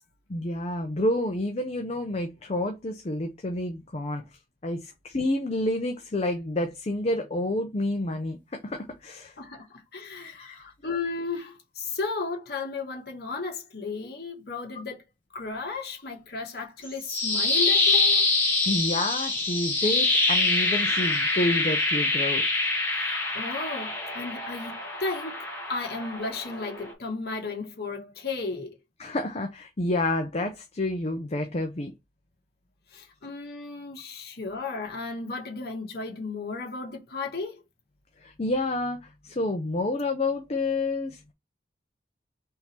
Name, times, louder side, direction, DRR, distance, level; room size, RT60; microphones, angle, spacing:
voice 1, 0.3-4.2 4.6-9.3 10.4-10.7 18.7-22.4 29.0-31.9 38.2-41.2, left 1 dB, 35° left, 0.6 m, -29 dB
voice 2, 9.9-15.0 15.3-18.3 23.0-28.8 32.9-37.6, left 4 dB, 60° left, 1.3 m, -34 dB
sound 1, 16.8-26.9, left 3 dB, 15° left, 1.6 m, -25 dB
3.7 x 3.0 x 4.2 m
head